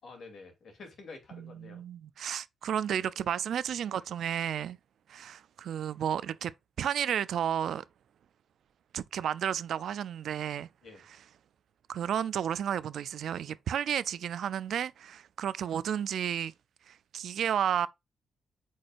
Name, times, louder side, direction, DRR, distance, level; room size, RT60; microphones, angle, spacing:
voice 1, 0.0-1.8 10.8-11.0, left 3 dB, 50° left, 2.8 m, -49 dB
voice 2, 1.3-4.8 5.1-6.5 6.8-7.8 8.9-10.7 11.9-16.5 16.9-17.9, right 9 dB, 65° right, 0.4 m, -32 dB
8.6 x 4.8 x 2.5 m
wide cardioid pair, 165°, 0 cm